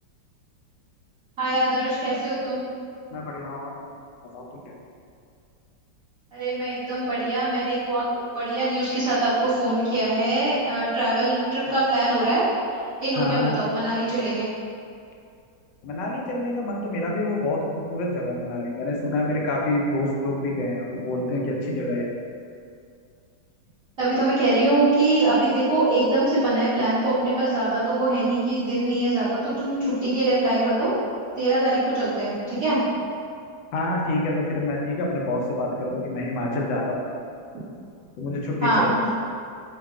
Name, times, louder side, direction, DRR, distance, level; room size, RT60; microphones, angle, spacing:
voice 1, 1.4-2.6 6.3-8.1 8.3-12.4 12.7-14.5 24.0-30.9 31.3-32.8 38.6-39.1, right 2 dB, 50° right, -15 dB, 1.7 m, -23 dB
voice 2, 3.1-3.9 4.3-4.5 13.2-13.6 15.8-22.1 33.7-37.0 38.2-38.9, left 2 dB, 80° left, -2 dB, 1.3 m, -27 dB
4.7 x 2.2 x 3.6 m, 2.4 s
omnidirectional pair, 2.0 m